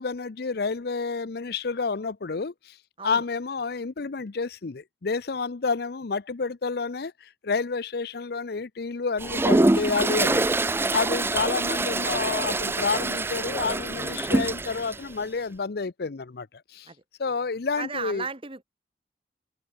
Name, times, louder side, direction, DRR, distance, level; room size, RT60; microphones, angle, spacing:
voice 1, 0.0-2.8 3.0-16.5 16.7-16.9 17.2-18.3, left 4 dB, 60° left, 0.6 m, -29 dB
Toilet flush, 9.2-15.0, right 2 dB, 15° right, 0.4 m, -25 dB
voice 2, 17.8-18.6, right 5 dB, 30° right, 2.2 m, -35 dB
head